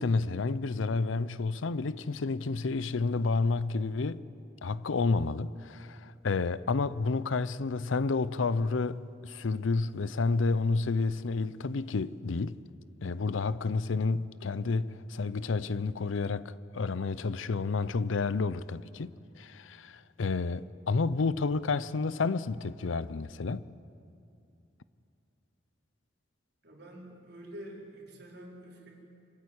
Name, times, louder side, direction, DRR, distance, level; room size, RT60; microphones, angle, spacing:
voice 1, 0.0-4.2 4.6-12.6 13.0-23.7, left 4 dB, 80° left, 0.6 m, -30 dB
voice 2, 26.6-28.9, right 1 dB, 55° right, 4.4 m, -47 dB
26.0 x 13.0 x 9.6 m
head